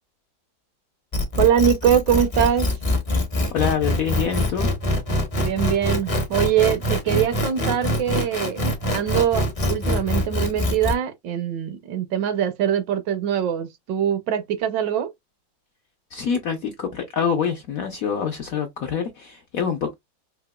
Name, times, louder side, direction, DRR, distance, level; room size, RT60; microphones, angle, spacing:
sound 1, 1.1-10.9, left 1 dB, 45° left, 0.4 m, -24 dB
voice 1, 1.4-2.8 5.4-8.6 8.9-15.1, right 9 dB, 70° right, 1.3 m, -22 dB
voice 2, 3.5-4.7 16.1-19.9, left 7 dB, 70° left, 0.8 m, -25 dB
4.8 x 2.8 x 2.2 m
omnidirectional pair, 2.1 m